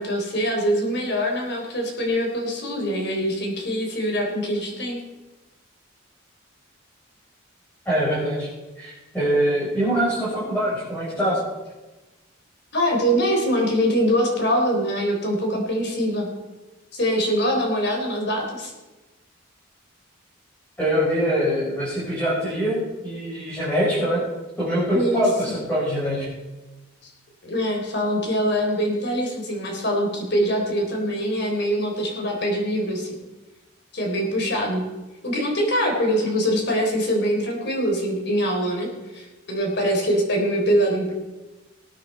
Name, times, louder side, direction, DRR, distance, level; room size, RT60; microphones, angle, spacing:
voice 1, 0.0-5.0 12.7-16.3 16.9-18.7 24.9-25.3 27.0-27.1 27.4-33.2 33.9-34.8 35.2-38.9 39.1-41.1, equal, 55° left, 1 dB, 3.7 m, -23 dB
voice 2, 7.8-8.5 8.8-11.5 20.8-24.2 24.6-26.3, equal, 10° left, -10 dB, 4.8 m, -23 dB
19.5 x 9.1 x 4.4 m, 1.1 s
head